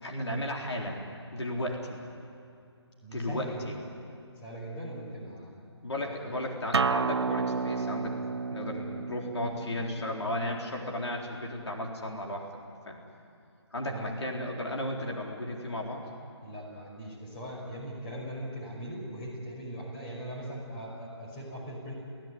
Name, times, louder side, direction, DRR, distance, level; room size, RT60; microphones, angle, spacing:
voice 1, 0.0-1.1 1.3-2.0 3.1-3.8 5.8-8.2 8.4-12.5 12.9-13.0 13.7-16.1, left 1 dB, 70° left, 0 dB, 4.1 m, -34 dB
voice 2, 3.0-3.8 4.4-5.5 6.0-6.2 13.7-14.1 16.0-16.1 16.4-21.9, right 1 dB, 20° left, -2 dB, 5.4 m, -40 dB
Acoustic guitar, 6.7-11.9, right 4 dB, 65° right, 0.8 m, -32 dB
30.0 x 16.5 x 9.4 m, 2.6 s
figure-of-eight pair, 160°, 15 cm